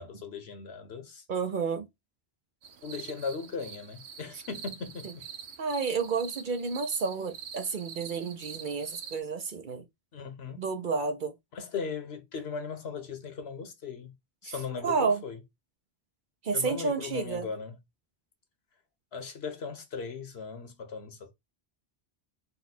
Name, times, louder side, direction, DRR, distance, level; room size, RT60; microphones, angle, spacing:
voice 1, 0.0-1.2 2.8-5.2 10.1-10.6 11.5-14.1 14.4-15.4 16.5-17.7 19.1-21.3, left 5 dB, 70° left, 1.2 m, -38 dB
voice 2, 1.3-1.9 5.0-5.1 5.6-9.9 10.5-11.3 14.4-14.5 14.8-15.2 16.4-17.5, right 5 dB, 55° right, 0.7 m, -30 dB
sound 1, 2.6-9.2, right 7 dB, 80° right, 1.0 m, -45 dB
4.0 x 2.3 x 4.2 m
omnidirectional pair, 1.1 m